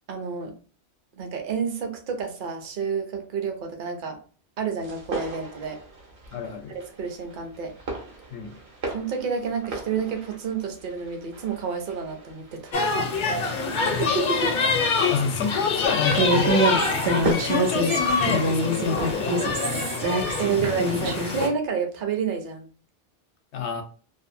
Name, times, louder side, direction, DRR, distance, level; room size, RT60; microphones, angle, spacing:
voice 1, 0.1-0.5 1.2-4.2 4.6-5.8 6.7-7.7 8.9-12.7 14.1-14.5 20.4-22.7, right 6 dB, 55° right, 0.7 m, -29 dB
sound 1, 4.8-17.3, right 3 dB, 70° right, 1.1 m, -38 dB
voice 2, 6.3-6.8 8.3-8.6 13.4-14.1 15.0-16.7 17.1-19.3 23.5-23.8, left 6 dB, 80° left, 0.9 m, -28 dB
sound 2, 12.7-21.5, left 4 dB, 55° left, 0.6 m, -26 dB
Human voice, 16.1-21.3, right 1 dB, 90° right, 0.9 m, -25 dB
2.7 x 2.4 x 2.5 m
omnidirectional pair, 1.1 m